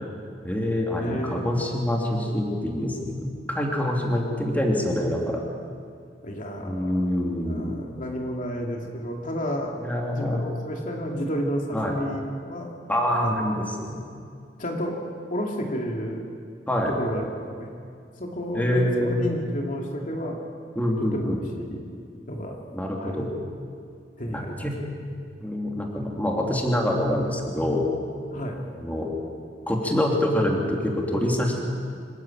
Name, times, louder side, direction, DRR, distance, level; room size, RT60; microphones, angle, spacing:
voice 1, 0.4-5.4 6.6-7.7 9.8-10.4 11.7-12.0 12.9-14.0 16.7-16.9 18.5-19.2 20.8-21.4 22.7-23.4 24.3-24.7 25.4-27.8 28.8-29.1 29.7-31.6, left 1 dB, 10° left, -1 dB, 3.0 m, -25 dB
voice 2, 1.0-1.5 6.2-7.0 7.5-9.7 10.0-12.7 13.2-13.4 14.6-15.0 15.3-16.2 16.9-17.7 18.2-20.4 21.0-22.0 22.3-22.6 23.0-23.2 24.2-25.0 28.3-28.6, equal, 45° left, 0 dB, 2.5 m, -31 dB
26.0 x 14.5 x 9.0 m, 2.3 s
head